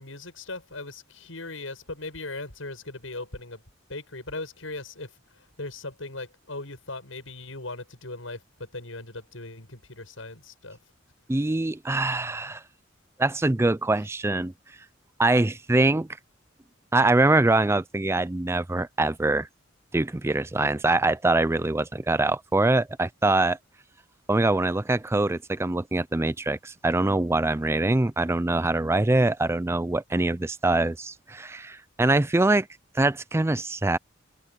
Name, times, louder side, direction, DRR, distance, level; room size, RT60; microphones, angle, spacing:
voice 1, 0.0-3.6 3.9-10.8, left 2 dB, 90° left, 7.7 m, -39 dB
voice 2, 11.3-12.6 13.2-14.5 15.2-16.1 16.9-19.5 19.9-23.6 24.3-32.7 32.9-34.0, right 2 dB, 15° right, 0.4 m, -23 dB
head